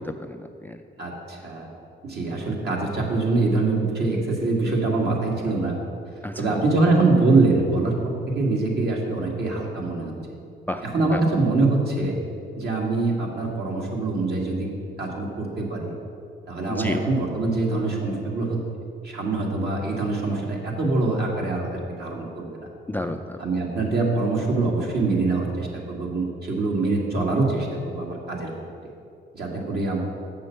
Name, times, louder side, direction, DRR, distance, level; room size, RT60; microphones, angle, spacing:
voice 1, 0.0-0.8 6.2-6.6 10.7-11.2 16.7-17.0 22.9-23.4, left 1 dB, 10° left, 7 dB, 0.3 m, -31 dB
voice 2, 1.0-1.7 2.0-5.7 6.4-10.1 10.8-12.2 12.5-14.7 15.0-15.9 16.5-18.6 19.0-22.5 23.4-28.5 28.8-28.9 29.3-30.0, right 3 dB, 55° right, -1 dB, 1.7 m, -24 dB
7.2 x 6.2 x 5.6 m, 2.5 s
cardioid pair, 90°, 20 cm